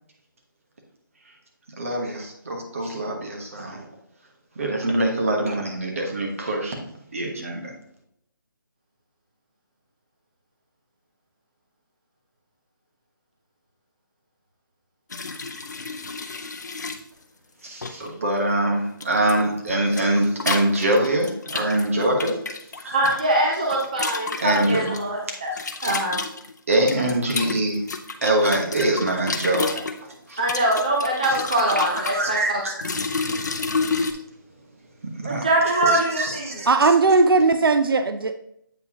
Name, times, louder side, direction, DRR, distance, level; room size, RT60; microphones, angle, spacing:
voice 1, 1.8-3.8 4.6-6.8 7.1-7.7 17.6-22.4 22.8-23.0 24.4-25.0 25.5-25.6 26.7-27.8 28.2-29.8 30.3-30.4 30.7-30.8 31.3-31.4 31.9-32.8 35.0-35.5 35.8-36.7, right 1 dB, 40° right, 1 dB, 1.2 m, -24 dB
sound 1, 15.1-17.0 17.8-18.1 19.0-19.4 19.7-23.2 23.5-25.0 25.6-29.9 30.4-32.2 32.8-34.1, left 4 dB, 50° left, 0.6 m, -30 dB
voice 2, 22.9-25.5 25.8-26.2 30.4-32.6 35.2-36.5, right 1 dB, 20° right, -1 dB, 0.5 m, -23 dB
voice 3, 36.7-38.3, right 3 dB, 80° right, 9 dB, 0.5 m, -18 dB
7.8 x 4.7 x 2.9 m, 0.74 s
hypercardioid pair, 180°, 12 cm